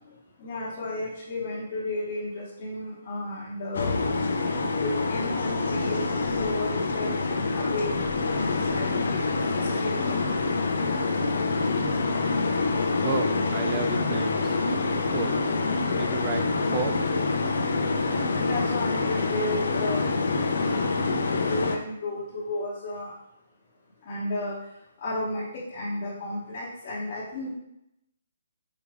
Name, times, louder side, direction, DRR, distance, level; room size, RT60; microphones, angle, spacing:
voice 1, 0.4-3.9 4.8-7.9 8.3-9.2 9.7-9.9 18.4-20.0 20.5-20.8 21.5-23.1 24.1-24.5 25.0-27.5, left 2 dB, 35° left, -8 dB, 1.0 m, -33 dB
sound 1, 3.7-21.8, left 3 dB, 70° left, 0.5 m, -26 dB
voice 2, 12.8-14.6 15.1-15.4 16.0-17.0, right 5 dB, 25° right, 5 dB, 0.4 m, -32 dB
4.9 x 2.5 x 3.3 m, 0.82 s
hypercardioid pair, 165°, 0 cm